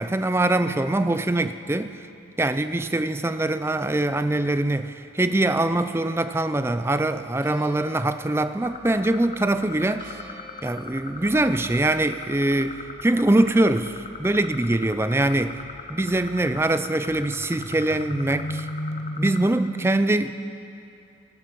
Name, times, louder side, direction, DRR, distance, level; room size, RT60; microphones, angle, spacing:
voice 1, 0.0-2.0 2.4-10.2 10.6-15.6 15.9-18.7 19.2-20.3, right 2 dB, 10° right, 11 dB, 0.4 m, -23 dB
Church bell, 5.7-12.4, right 1 dB, 40° right, 2.2 m, -49 dB
sound 1, 8.6-19.5, left 2 dB, 35° left, 0.7 m, -37 dB
19.5 x 12.0 x 5.3 m, 2.6 s
head